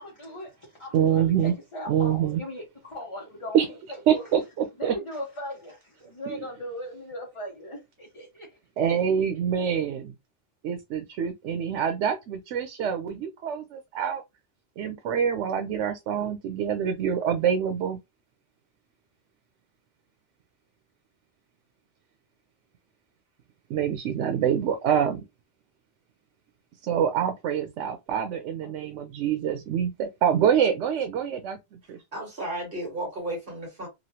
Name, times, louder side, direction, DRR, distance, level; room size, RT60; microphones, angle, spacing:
voice 1, 0.0-4.3 4.8-8.5, equal, 30° left, 1.0 m, -38 dB
voice 2, 0.9-1.5 1.9-2.4 3.5-3.7 4.1-5.0 6.3-6.4 8.8-10.1 10.6-14.2 14.8-18.0 23.7-25.2 26.8-32.0, right 8 dB, 85° right, 0.9 m, -26 dB
voice 3, 32.1-33.9, right 1 dB, 50° right, 1.6 m, -34 dB
3.0 x 2.5 x 2.8 m
omnidirectional pair, 1.2 m